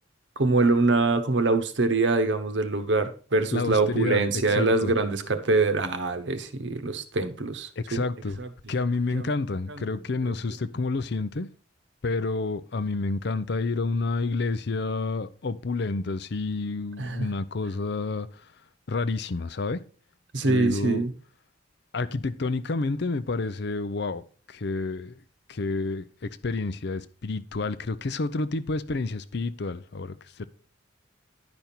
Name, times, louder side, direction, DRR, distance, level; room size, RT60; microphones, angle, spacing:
voice 1, 0.4-8.0 8.4-8.5 9.1-9.3 9.7-9.8 10.3-10.4 17.0-17.3 20.3-21.1, right 3 dB, 65° right, 1.0 m, -24 dB
voice 2, 3.5-4.9 7.8-8.4 8.7-11.5 12.0-18.3 18.9-19.8 20.4-21.0 21.9-25.2 25.5-30.4, left 3 dB, 60° left, 0.6 m, -29 dB
11.0 x 5.3 x 4.3 m
head